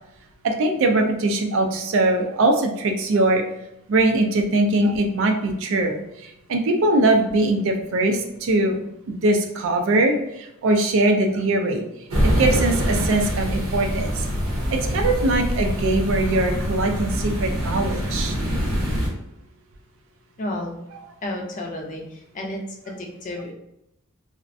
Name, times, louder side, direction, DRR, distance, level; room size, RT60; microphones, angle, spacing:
voice 1, 0.4-3.4 3.9-8.8 9.1-11.8 12.2-14.3 14.7-18.4, right 2 dB, 60° right, 4 dB, 0.4 m, -21 dB
sound 1, 12.1-19.1, equal, 80° right, 0.8 m, -24 dB
voice 2, 20.4-20.8 21.2-22.6 22.9-23.5, left 1 dB, 35° left, 1 dB, 0.4 m, -31 dB
2.4 x 2.1 x 2.5 m, 0.82 s
head